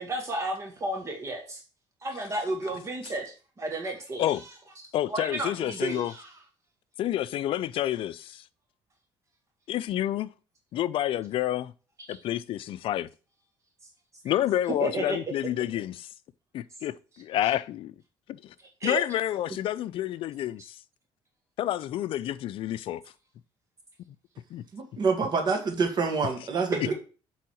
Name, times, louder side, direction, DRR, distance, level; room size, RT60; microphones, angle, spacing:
voice 1, 0.0-1.6 2.0-4.5 5.1-6.4 12.1-12.2 14.8-15.2 18.8-19.0 26.7-26.9, right 2 dB, 30° right, 1.7 m, -32 dB
voice 2, 4.9-6.1 7.0-8.4 9.7-10.3 10.7-11.7 12.1-13.1 14.2-16.1 16.5-17.9 18.3-18.5 18.8-20.7 21.6-23.0 24.5-24.6, left 12 dB, 60° left, 0.5 m, -29 dB
voice 3, 24.7-26.9, right 4 dB, 45° right, 2.1 m, -27 dB
7.3 x 3.9 x 6.3 m
cardioid pair, 125°, 10 cm